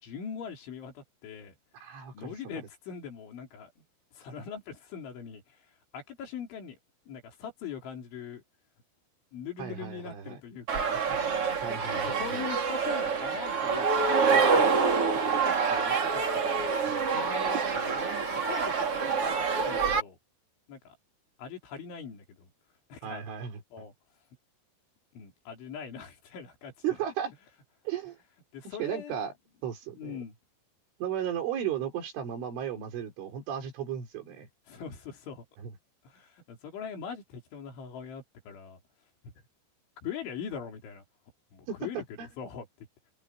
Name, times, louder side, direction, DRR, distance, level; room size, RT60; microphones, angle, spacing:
voice 1, 0.0-1.6 2.1-3.8 4.1-5.6 5.9-6.8 7.1-8.4 9.3-11.2 11.7-18.0 18.4-20.2 20.7-21.0 21.4-22.5 22.9-23.2 23.7-23.9 25.1-26.7 28.5-29.2 30.0-30.3 34.7-35.4 36.0-38.8 39.2-39.3 40.0-41.0 41.5-42.0 42.4-42.9, left 7 dB, 75° left, 6.5 m, -42 dB
voice 2, 1.7-2.7 9.6-10.4 11.6-12.5 23.0-23.6 26.8-27.3 27.9-28.2 28.8-29.3 29.6-30.2 31.0-34.5 35.6-35.7 41.7-42.3, right 9 dB, 90° right, 6.6 m, -35 dB
sound 1, 10.7-20.0, right 5 dB, 35° right, 3.0 m, -26 dB
omnidirectional pair, 5.4 m